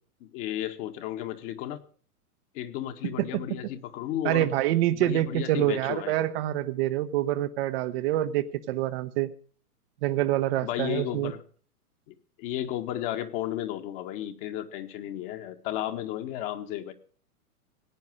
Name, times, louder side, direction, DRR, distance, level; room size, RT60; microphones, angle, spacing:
voice 1, 0.2-1.8 2.5-4.5 4.9-6.2 10.6-11.4 12.1-16.9, left 12 dB, 40° left, 7 dB, 1.8 m, -33 dB
voice 2, 4.2-9.3 10.0-11.3, right 14 dB, 40° right, 10 dB, 0.9 m, -26 dB
17.0 x 9.5 x 6.3 m, 0.43 s
figure-of-eight pair, 110°, 45 cm